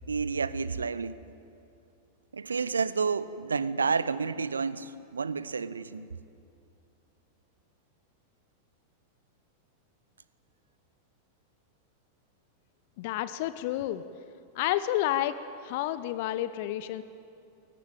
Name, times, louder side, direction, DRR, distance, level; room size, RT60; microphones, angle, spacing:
voice 1, 0.1-1.2 2.3-6.1, right 5 dB, 75° right, 17 dB, 0.7 m, -30 dB
voice 2, 13.0-14.0 14.5-15.4 15.6-17.0, left 13 dB, 50° left, 14 dB, 0.7 m, -30 dB
21.5 x 18.5 x 9.1 m, 2.7 s
figure-of-eight pair, 90°, 0 cm